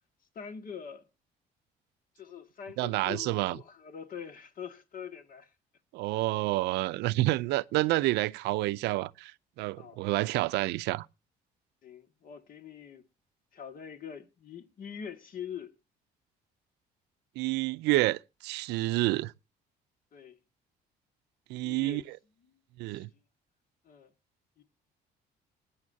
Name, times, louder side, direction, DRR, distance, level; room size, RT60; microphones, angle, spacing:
voice 1, 0.4-1.1 2.2-5.5 9.8-10.0 11.8-13.1 13.5-15.8 20.1-20.4 21.6-22.1 22.4-22.6 22.9-23.1 23.8-24.1 24.6-24.7, left 8 dB, 55° left, 1.9 m, -44 dB
voice 2, 2.8-3.6 5.9-11.1 17.4-19.3 21.5-22.0 22.8-23.1, right 18 dB, 90° right, 0.6 m, -29 dB
20.5 x 9.5 x 2.8 m
cardioid pair, 110°, 17 cm